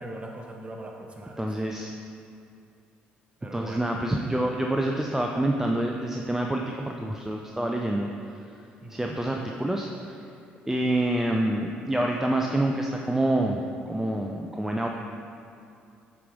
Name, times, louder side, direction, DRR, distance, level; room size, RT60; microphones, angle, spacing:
voice 1, 0.0-1.5 3.4-3.8 8.8-9.2, right 1 dB, 25° right, 1 dB, 1.1 m, -40 dB
voice 2, 1.4-1.9 3.5-8.1 8.9-10.2 10.7-13.6 13.9-14.9, right 1 dB, 10° right, 1 dB, 0.5 m, -27 dB
8.4 x 4.9 x 3.6 m, 2.5 s
hypercardioid pair, 60°, 5 cm